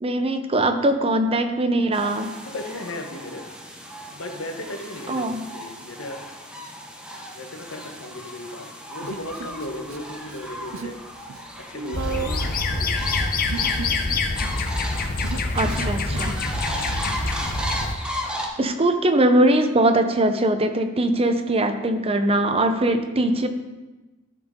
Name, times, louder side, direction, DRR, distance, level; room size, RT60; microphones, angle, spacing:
voice 1, 0.0-2.3 5.1-5.4 15.5-16.3 18.6-23.5, right 1 dB, 30° right, 7 dB, 0.7 m, -21 dB
sound 1, 1.9-18.5, equal, 5° right, 1.0 m, -36 dB
voice 2, 2.4-3.5 4.1-6.2 7.3-11.0 11.6-12.4 12.8-13.1 16.8-17.1, left 1 dB, 75° left, 5 dB, 1.2 m, -36 dB
Human voice, 9.0-10.0 10.3-11.0 11.3-16.5, right 5 dB, 80° right, 0.5 m, -35 dB
sound 2, 11.9-17.9, left 3 dB, 45° left, 0.8 m, -25 dB
13.0 x 6.2 x 3.7 m, 1.2 s
head